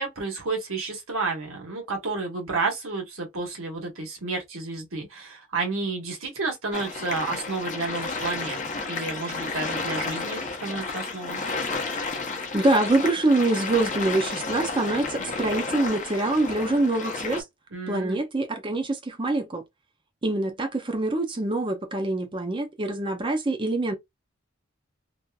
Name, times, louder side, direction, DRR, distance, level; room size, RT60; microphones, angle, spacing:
voice 1, 0.0-11.4 17.7-18.2, right 3 dB, 85° right, 1.3 m, -31 dB
sound 1, 6.7-17.4, left 3 dB, 35° left, 0.6 m, -32 dB
voice 2, 12.5-17.4 17.9-19.6 20.2-24.0, right 2 dB, 25° right, 0.6 m, -25 dB
2.7 x 2.4 x 2.3 m
head